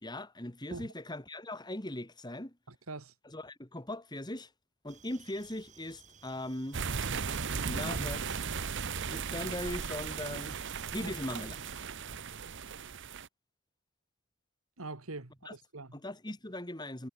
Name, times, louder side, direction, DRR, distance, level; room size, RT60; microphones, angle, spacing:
voice 1, 0.0-2.6 3.2-4.5 4.8-6.8 7.7-8.4 9.1-10.6 10.9-11.6 15.5-15.6 15.9-17.1, left 1 dB, 20° left, 2.1 m, -39 dB
voice 2, 2.7-3.1 11.0-11.1 14.8-16.0, right 2 dB, 70° right, 2.0 m, -43 dB
sound 1, 4.9-11.8, right 6 dB, 35° right, 3.4 m, -58 dB
sound 2, 6.7-13.3, right 5 dB, 55° right, 1.0 m, -36 dB
head